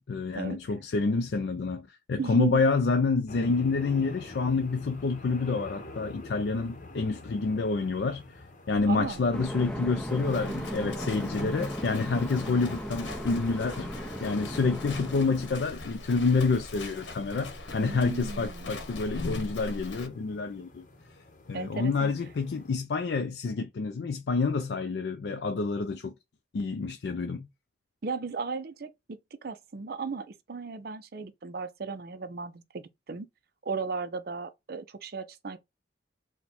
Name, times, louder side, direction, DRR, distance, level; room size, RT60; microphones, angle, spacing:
voice 1, 0.1-8.2 8.7-13.9 14.2-20.8 21.5-26.1 26.5-27.5, left 4 dB, 65° left, 0.4 m, -28 dB
voice 2, 2.2-2.7 8.9-9.3 17.8-18.7 21.5-22.1 28.0-33.3 33.6-35.6, right 4 dB, 55° right, 0.5 m, -35 dB
sound 1, 3.3-22.8, left 2 dB, 45° left, 0.8 m, -49 dB
Livestock farm animals working animals, 8.7-20.1, left 2 dB, 80° left, 1.0 m, -42 dB
sound 2, 9.3-15.6, equal, 5° left, 0.5 m, -36 dB
4.4 x 2.2 x 4.1 m
head